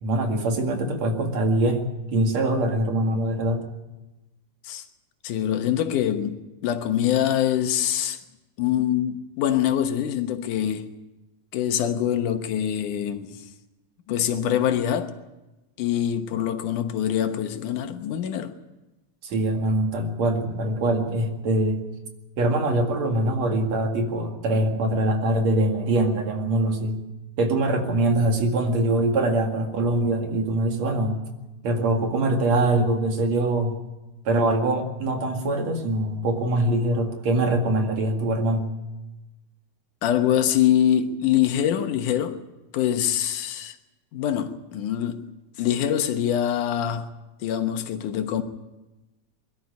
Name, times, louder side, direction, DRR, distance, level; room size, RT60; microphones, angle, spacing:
voice 1, 0.0-1.8 2.1-3.6 19.2-21.8 22.4-27.0 27.4-31.2 31.6-33.8 34.2-38.7, right 1 dB, 60° right, 3.3 m, -23 dB
voice 2, 5.2-6.4 6.6-8.2 8.6-10.9 11.5-13.4 14.1-15.1 15.8-18.5 40.0-42.4 42.7-43.8 44.1-45.2 45.6-47.1 47.4-48.4, left 10 dB, 90° left, 2.7 m, -24 dB
22.5 x 13.0 x 9.6 m
omnidirectional pair, 3.5 m